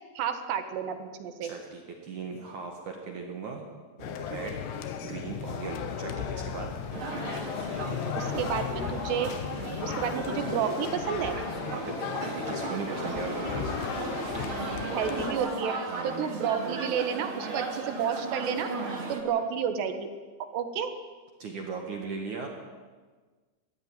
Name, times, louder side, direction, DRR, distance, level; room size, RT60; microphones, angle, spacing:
voice 1, 0.2-1.5 8.2-9.3 9.8-11.4 14.9-15.8 16.0-18.7 19.1-20.1 20.4-20.9, right 8 dB, 70° right, 8 dB, 3.3 m, -31 dB
voice 2, 1.4-3.7 4.0-6.7 11.7-13.7 15.9-16.3 21.4-22.5, right 5 dB, 55° right, 2 dB, 2.4 m, -38 dB
sound 1, 4.0-15.3, left 8 dB, 70° left, 3.1 m, -35 dB
sound 2, 6.9-19.2, right 4 dB, 35° right, 2.3 m, -36 dB
20.0 x 14.5 x 9.0 m, 1.4 s
omnidirectional pair, 5.4 m